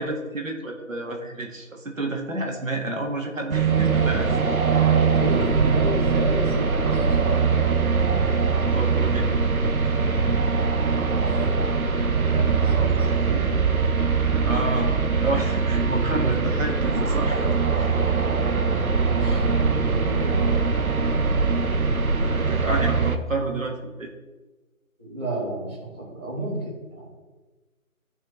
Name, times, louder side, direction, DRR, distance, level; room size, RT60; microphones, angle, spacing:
voice 1, 0.0-4.6 8.7-9.4 14.3-17.4 17.8-18.0 22.3-24.1, right 2 dB, 65° right, 1 dB, 2.0 m, -30 dB
sound 1, 3.5-23.2, right 5 dB, 85° right, 1.1 m, -22 dB
voice 2, 5.1-7.7 10.7-11.6 11.8-13.5 18.7-19.5 19.7-20.6 25.0-27.1, right 2 dB, 10° right, -15 dB, 2.0 m, -32 dB
15.5 x 5.9 x 3.3 m, 1.2 s
figure-of-eight pair, 180°, 42 cm